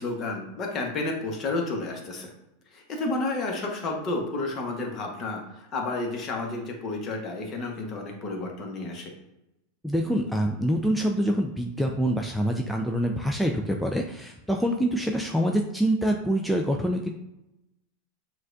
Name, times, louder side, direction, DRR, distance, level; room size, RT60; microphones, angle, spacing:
voice 1, 0.0-2.3 2.7-9.1, left 2 dB, 40° left, 1 dB, 1.0 m, -31 dB
voice 2, 9.8-17.1, equal, ahead, 1 dB, 0.4 m, -25 dB
6.2 x 2.4 x 2.5 m, 0.90 s
hypercardioid pair, 100°, 0 cm